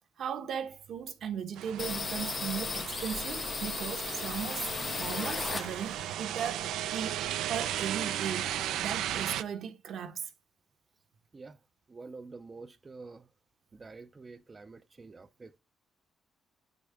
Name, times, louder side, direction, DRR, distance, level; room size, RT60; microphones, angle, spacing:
voice 1, 0.2-4.7 5.0-7.2 7.5-8.5 8.8-10.3, right 8 dB, 70° right, 1.1 m, -37 dB
sound 1, 1.6-9.4, right 11 dB, 85° right, 0.4 m, -36 dB
sound 2, 1.8-6.1 6.5-7.8 8.1-8.2 8.5-9.2, left 5 dB, 35° left, 0.4 m, -36 dB
voice 2, 11.9-13.3 13.7-15.6, right 3 dB, 30° right, 0.4 m, -48 dB
9.2 x 5.2 x 3.4 m
cardioid pair, 90°, 0 cm